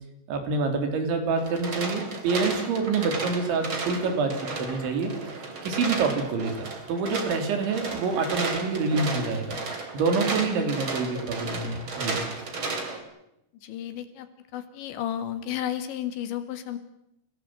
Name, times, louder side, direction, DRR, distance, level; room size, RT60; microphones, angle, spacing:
voice 1, 0.3-6.5 6.9-9.6 9.9-12.3, right 4 dB, 70° right, 6 dB, 5.3 m, -27 dB
sound 1, 1.4-13.0, right 3 dB, 30° right, 3.1 m, -34 dB
voice 2, 13.6-16.8, left 10 dB, 70° left, 9 dB, 3.8 m, -33 dB
29.0 x 17.5 x 7.7 m, 0.84 s
omnidirectional pair, 5.5 m